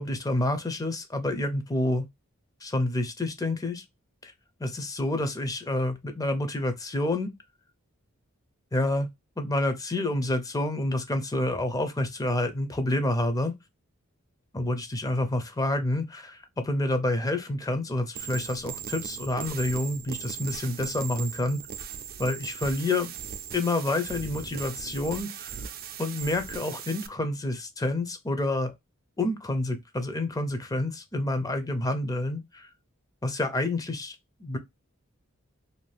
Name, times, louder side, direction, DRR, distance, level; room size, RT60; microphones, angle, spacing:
voice 1, 0.0-2.0 2.6-3.8 4.2-4.3 4.6-7.3 8.7-9.1 9.4-13.5 14.5-21.6 22.2-23.1 23.5-25.6 26.0-28.7 29.2-32.7 33.2-34.6, left 2 dB, 15° left, 0.5 m, -28 dB
sound 1, 18.2-27.1, right 8 dB, 45° right, 0.3 m, -38 dB
2.6 x 2.4 x 3.2 m
head